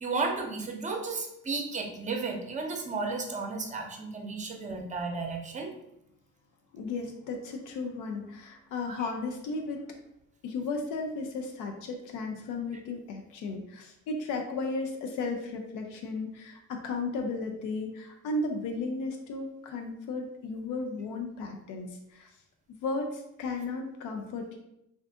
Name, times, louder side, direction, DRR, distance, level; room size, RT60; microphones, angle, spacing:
voice 1, 0.0-5.7 8.9-9.0, right 4 dB, 25° right, 3 dB, 0.6 m, -33 dB
voice 2, 6.7-9.8 10.4-22.3 22.8-24.6, left 3 dB, 90° left, 3 dB, 0.5 m, -35 dB
2.6 x 2.4 x 3.4 m, 0.82 s
cardioid pair, 90°, 30 cm